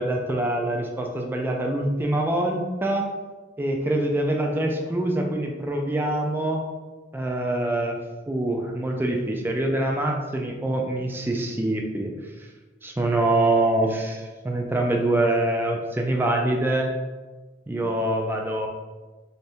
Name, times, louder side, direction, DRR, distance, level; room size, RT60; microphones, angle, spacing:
voice 1, 0.0-3.1 3.6-6.6 7.1-8.0 8.3-12.1 12.8-16.9 17.7-18.7, right 1 dB, 10° right, 1 dB, 0.3 m, -25 dB
2.7 x 2.6 x 3.3 m, 1.3 s
head